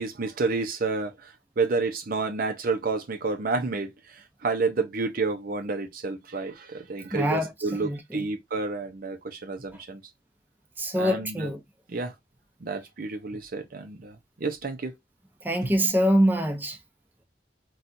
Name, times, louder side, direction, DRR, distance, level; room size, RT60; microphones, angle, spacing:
voice 1, 0.0-10.0 11.0-11.5 11.9-12.1 12.6-15.0 15.6-15.7, right 3 dB, 55° right, 0.6 m, -30 dB
voice 2, 7.1-8.2 10.8-11.6 15.4-16.8, equal, 10° right, 0.7 m, -25 dB
4.1 x 2.3 x 2.5 m
head